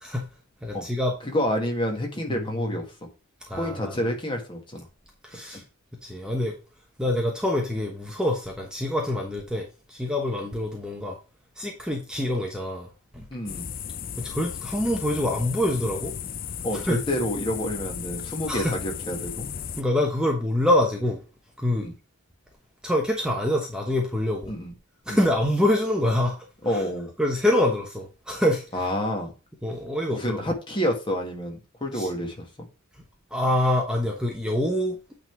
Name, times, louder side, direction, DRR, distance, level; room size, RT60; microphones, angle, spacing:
voice 1, 0.6-1.2 2.3-2.8 3.5-4.1 5.2-5.6 6.0-6.5 7.0-11.2 11.6-13.3 14.2-16.1 16.7-17.0 18.5-18.7 19.8-21.2 21.6-21.9 22.8-24.5 25.1-26.4 26.7-26.8 27.2-28.9 29.6-30.4 31.9-32.1 33.3-35.2, left 1 dB, 5° right, 1.1 m, -26 dB
voice 2, 1.2-2.8 3.6-4.9 5.5-5.6 13.3-13.7 16.6-19.5 21.8-21.9 24.5-24.7 25.1-25.3 26.6-27.1 28.7-29.3 30.1-32.5, equal, 25° left, 1.8 m, -28 dB
sound 1, 13.5-19.8, left 8 dB, 40° left, 0.5 m, -35 dB
8.8 x 3.9 x 4.6 m
head